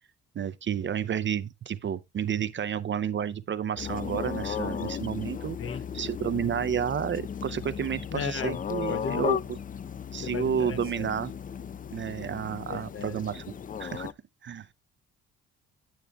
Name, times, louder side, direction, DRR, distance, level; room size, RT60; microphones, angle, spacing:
voice 1, 0.3-5.6 5.9-9.4 10.1-11.3 11.9-13.4 13.8-14.1 14.4-14.7, right 8 dB, 40° right, 0.5 m, -31 dB
sound 1, 3.8-14.1, left 8 dB, 30° left, 0.4 m, -35 dB
voice 2, 8.1-9.2 10.2-11.1 12.7-13.2, left 7 dB, 45° left, 1.0 m, -36 dB
9.4 x 8.1 x 2.2 m
cardioid pair, 90°, 30 cm